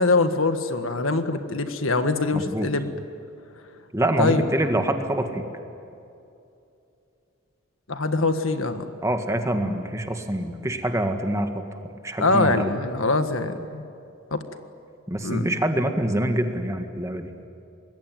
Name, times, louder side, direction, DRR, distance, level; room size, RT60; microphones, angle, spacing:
voice 1, 0.0-2.9 4.2-4.4 7.9-8.8 12.2-13.8 14.3-14.4 15.2-15.4, left 3 dB, 75° left, 8 dB, 1.6 m, -23 dB
voice 2, 2.3-2.7 3.9-5.4 9.0-11.6 12.0-12.7 15.1-17.3, right 1 dB, 15° right, 5 dB, 1.8 m, -25 dB
25.5 x 21.5 x 9.3 m, 2.6 s
head